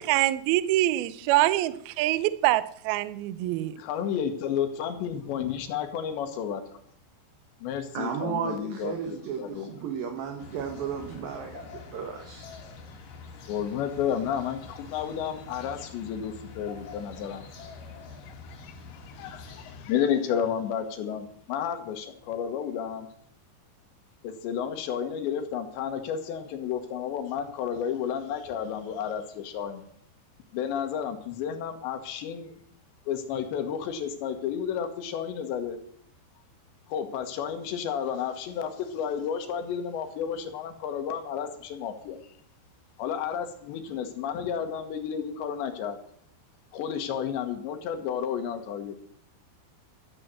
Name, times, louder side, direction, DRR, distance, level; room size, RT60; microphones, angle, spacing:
voice 1, 0.0-3.7, right 15 dB, 90° right, 15 dB, 2.2 m, -25 dB
voice 2, 3.8-6.6 7.6-9.7 13.5-17.4 18.6-18.7 19.1-23.1 24.2-29.8 30.5-32.5 33.1-35.8 36.9-42.2 43.0-46.0 46.7-49.0, left 8 dB, 80° left, 8 dB, 3.6 m, -31 dB
voice 3, 7.9-12.4, right 7 dB, 65° right, 4 dB, 2.8 m, -34 dB
sound 1, 10.4-19.9, left 4 dB, 55° left, 3.3 m, -46 dB
13.0 x 9.4 x 7.7 m, 0.65 s
omnidirectional pair, 5.2 m